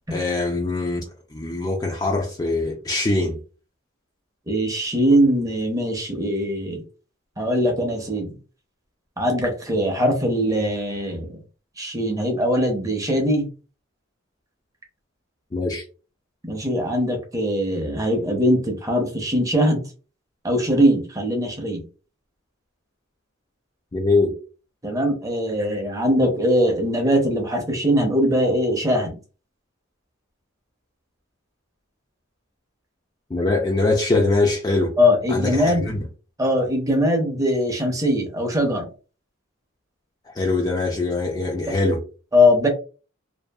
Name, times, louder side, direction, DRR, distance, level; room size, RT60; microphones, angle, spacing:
voice 1, 0.1-3.4 15.5-15.8 23.9-24.3 33.3-35.0 35.3-36.0 40.3-42.0, left 2 dB, 20° left, 0.4 m, -23 dB
voice 2, 4.5-6.8 7.4-8.4 9.2-11.4 11.8-13.5 16.4-19.8 20.4-21.9 24.8-29.2 35.0-35.9 36.4-38.9 41.7-41.8 42.3-42.7, equal, 15° right, 0.6 m, -21 dB
2.6 x 2.4 x 2.3 m
head